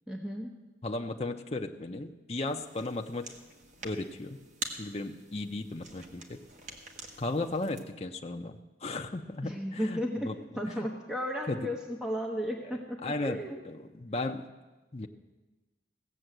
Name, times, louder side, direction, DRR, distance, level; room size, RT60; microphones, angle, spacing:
voice 1, 0.1-0.5 9.4-10.3 10.6-13.6, equal, 5° right, 0 dB, 1.0 m, -34 dB
voice 2, 0.8-3.3 3.8-4.4 4.8-6.4 7.2-10.4 10.7-10.9 11.5-11.7 13.0-14.4 14.9-15.1, left 2 dB, 35° left, 4 dB, 0.6 m, -35 dB
sound 1, 2.5-7.8, right 2 dB, 40° right, 1.3 m, -46 dB
16.5 x 7.1 x 7.8 m, 1.2 s
head